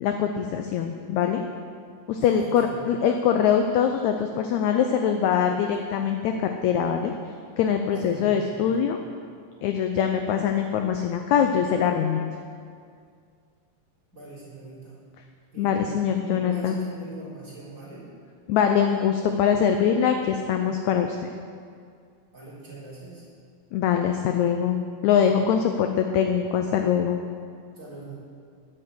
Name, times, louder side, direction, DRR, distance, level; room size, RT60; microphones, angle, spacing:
voice 1, 0.0-1.4 2.1-7.1 7.6-9.0 9.6-12.2 15.6-16.8 18.5-21.3 23.7-27.2, left 8 dB, 80° left, 5 dB, 1.6 m, -23 dB
voice 2, 2.2-2.9 7.9-8.7 14.1-15.0 15.5-15.9 16.2-18.0 22.3-23.3 25.2-25.4 27.8-28.1, right 2 dB, 20° right, -8 dB, 4.0 m, -41 dB
11.0 x 7.8 x 7.8 m, 2.2 s
omnidirectional pair, 3.9 m